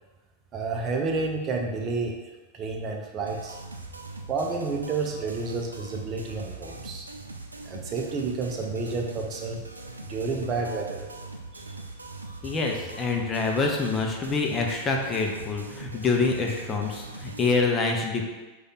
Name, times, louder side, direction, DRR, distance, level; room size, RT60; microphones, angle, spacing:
voice 1, 0.5-2.2 2.6-3.6 4.3-7.1 7.6-9.6 10.1-11.1 11.5-11.7, right 3 dB, 30° right, 1 dB, 0.6 m, -30 dB
sound 1, 3.3-17.6, right 2 dB, 80° right, 0.3 m, -41 dB
voice 2, 12.4-18.2, left 4 dB, 20° left, 1 dB, 0.6 m, -26 dB
5.0 x 2.4 x 4.0 m, 1.2 s
figure-of-eight pair, 90°, 0 cm